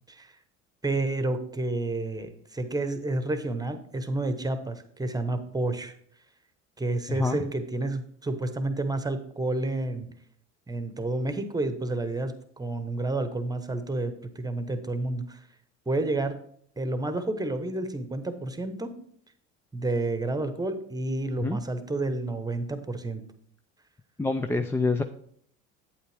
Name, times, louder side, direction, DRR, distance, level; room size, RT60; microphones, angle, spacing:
voice 1, 0.8-5.9 6.8-10.1 10.7-15.5 15.9-16.4 16.8-18.9 19.7-23.2, right 2 dB, 10° right, 9 dB, 1.0 m, -30 dB
voice 2, 7.1-7.4 21.4-21.6 24.2-25.0, left 3 dB, 5° left, 7 dB, 0.3 m, -26 dB
8.5 x 8.2 x 3.4 m, 0.64 s
hypercardioid pair, 75°, 35 cm